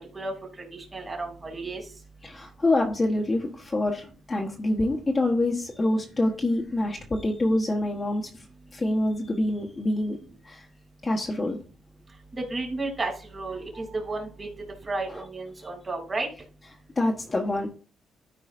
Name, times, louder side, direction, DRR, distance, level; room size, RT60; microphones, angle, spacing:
voice 1, 0.9-1.8 12.3-14.5 14.9-16.3, right 2 dB, 25° right, 2 dB, 2.8 m, -32 dB
voice 2, 2.2-8.3 8.7-10.2 10.4-10.6 11.0-11.6 15.1-15.2 17.0-17.7, left 1 dB, 25° left, 0 dB, 1.2 m, -26 dB
13.5 x 4.7 x 2.5 m, 0.38 s
cardioid pair, 90°, 0 cm